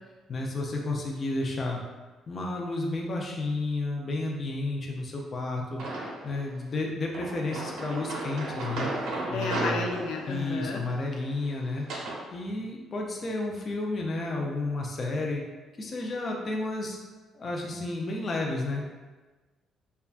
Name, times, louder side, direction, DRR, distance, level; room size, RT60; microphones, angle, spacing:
voice 1, 0.3-1.8 2.3-5.8 6.2-8.9 9.3-9.9 10.3-11.8 12.3-15.4 15.8-17.0 17.3-18.8, left 2 dB, 30° left, -1 dB, 0.5 m, -31 dB
sound 1, 5.8-6.4 7.1-12.2, right 2 dB, 85° right, 0.7 m, -35 dB
voice 2, 9.3-10.8, left 3 dB, 85° left, 1 dB, 0.5 m, -32 dB
5.5 x 2.2 x 2.4 m, 1.3 s
cardioid pair, 170°, 0 cm